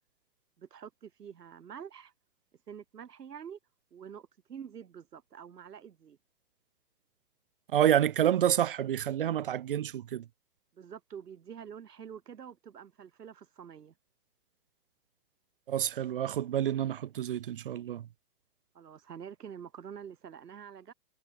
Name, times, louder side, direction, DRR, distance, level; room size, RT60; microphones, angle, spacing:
voice 1, 0.6-2.1 2.7-3.6 3.9-6.2 10.7-13.9 18.7-20.9, right 8 dB, 70° right, 5.9 m, -47 dB
voice 2, 7.7-10.2 15.7-18.1, right 10 dB, 35° right, 0.8 m, -28 dB
hypercardioid pair, 160°, 50 cm